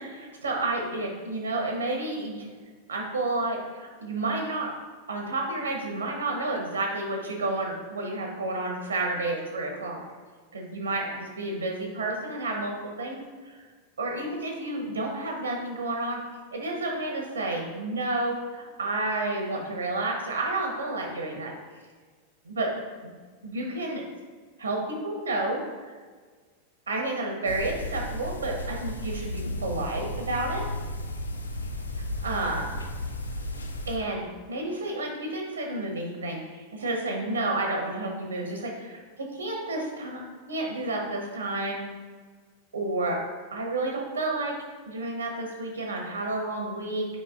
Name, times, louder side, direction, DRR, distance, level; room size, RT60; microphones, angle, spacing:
voice 1, 0.4-2.5 2.9-4.7 5.1-10.0 10.5-13.2 14.0-16.2 16.5-21.5 22.5-23.1 23.4-24.0 24.6-25.6 26.9-30.6 32.2-32.9 33.9-39.0 39.4-40.2 40.5-41.8 42.7-43.2 43.5-44.6 44.9-47.1, right 2 dB, 75° right, 1 dB, 1.1 m, -30 dB
sound 1, 27.4-34.0, left 1 dB, 75° left, 0.5 m, -34 dB
8.5 x 4.7 x 2.5 m, 1.5 s
figure-of-eight pair, 90°, 0 cm